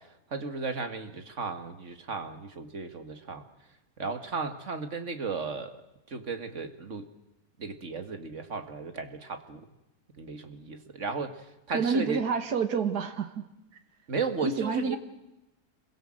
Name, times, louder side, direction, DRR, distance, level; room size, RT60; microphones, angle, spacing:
voice 1, 0.0-3.4 4.0-5.8 6.1-7.1 7.6-9.7 10.2-12.2 14.1-15.0, right 4 dB, 50° right, 8 dB, 2.2 m, -35 dB
voice 2, 11.7-13.5 14.4-15.0, right 5 dB, 85° right, 8 dB, 2.0 m, -28 dB
27.0 x 22.0 x 7.7 m, 0.96 s
omnidirectional pair, 1.6 m